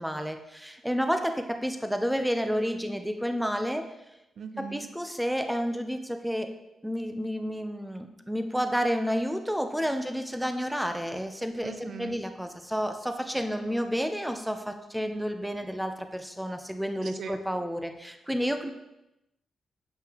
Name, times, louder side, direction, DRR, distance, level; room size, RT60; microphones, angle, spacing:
voice 1, 0.0-3.9 4.6-6.5 6.8-18.7, equal, ahead, 7 dB, 0.6 m, -30 dB
voice 2, 4.4-4.9 11.6-12.2 17.0-17.4, right 6 dB, 65° right, 9 dB, 0.4 m, -40 dB
7.7 x 5.4 x 3.0 m, 0.91 s
cardioid pair, 90°, 0 cm